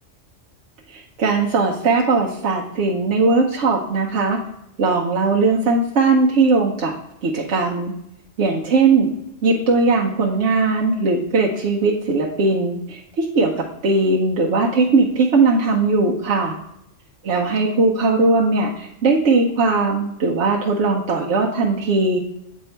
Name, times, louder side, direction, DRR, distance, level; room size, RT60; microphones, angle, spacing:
voice 1, 0.9-4.4 4.8-6.9 7.2-7.9 8.4-9.1 9.4-16.5 17.2-22.2, right 3 dB, 70° right, -3 dB, 1.1 m, -19 dB
8.0 x 3.7 x 4.4 m, 0.82 s
omnidirectional pair, 1.3 m